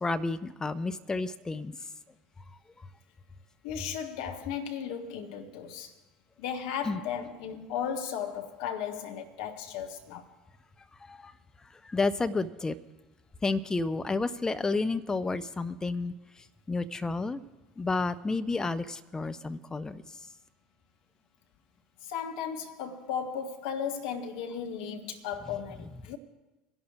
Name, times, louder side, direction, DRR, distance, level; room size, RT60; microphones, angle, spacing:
voice 1, 0.0-1.7 6.9-7.0 11.9-12.7 13.4-16.1 16.7-17.4 17.8-20.0, left 3 dB, 15° left, 0.6 m, -30 dB
voice 2, 3.6-5.9 6.4-10.3 22.1-26.2, left 7 dB, 60° left, 1.2 m, -35 dB
27.0 x 11.0 x 2.4 m
figure-of-eight pair, 65°, 4 cm